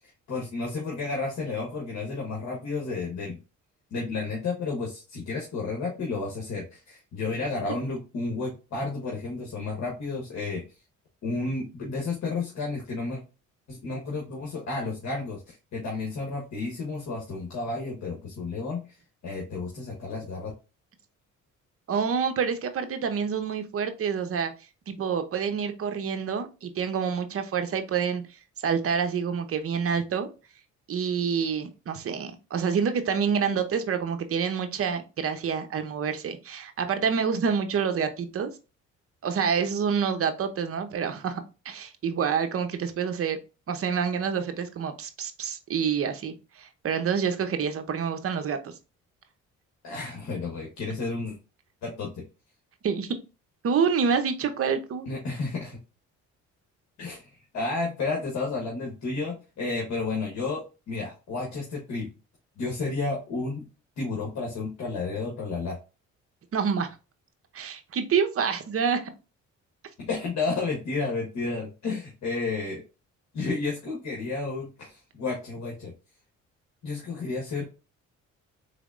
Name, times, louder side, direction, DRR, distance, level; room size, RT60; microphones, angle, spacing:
voice 1, 0.3-3.4 3.9-10.6 11.2-13.2 13.7-18.8 19.2-20.5 49.8-51.4 51.8-52.2 55.1-55.8 57.0-57.3 57.5-62.1 62.6-63.6 64.0-65.8 70.0-72.8 73.3-75.9 76.8-77.6, left 3 dB, 65° left, 1.3 m, -31 dB
voice 2, 21.9-24.5 24.9-28.2 28.6-30.3 30.9-38.5 39.2-43.4 43.7-48.7 52.8-53.2 53.6-55.1 66.5-66.9 67.5-69.1, right 6 dB, 50° right, 0.8 m, -27 dB
4.0 x 3.3 x 2.5 m
cardioid pair, 90°, 30 cm